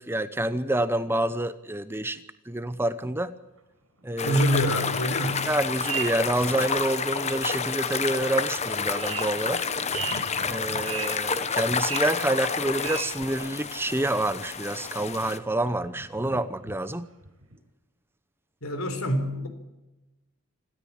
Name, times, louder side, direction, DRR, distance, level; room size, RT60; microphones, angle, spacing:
voice 1, 0.0-3.3 4.0-4.4 5.5-9.6 10.5-17.1, right 1 dB, 10° right, 0.8 m, -28 dB
sound 1, 3.6-3.7 4.0-4.1 5.0-5.1 5.5-6.8 7.3-7.4 8.1-8.2 8.6-13.8 14.0-14.3 14.7-15.4 15.7-16.8 17.2-17.5, right 7 dB, 70° right, 6.7 m, -38 dB
voice 2, 4.2-5.5 18.6-19.5, equal, 70° left, 4.1 m, -25 dB
sound 2, 4.2-15.4, left 5 dB, 30° left, 1.1 m, -30 dB
26.5 x 13.5 x 8.7 m
head